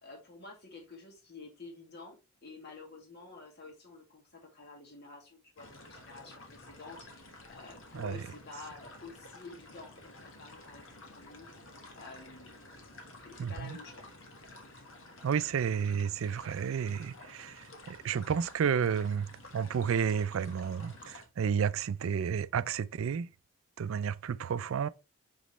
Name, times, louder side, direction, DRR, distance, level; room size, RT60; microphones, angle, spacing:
voice 1, 0.0-2.2 2.4-11.5 12.0-12.6 13.2-14.1, left 3 dB, 50° left, 2.1 m, -50 dB
sound 1, 5.6-21.3, left 2 dB, 65° left, 1.4 m, -52 dB
voice 2, 13.4-13.8 15.2-19.3 19.5-23.3 23.8-24.9, right 7 dB, 70° right, 0.4 m, -31 dB
6.2 x 5.2 x 3.1 m
head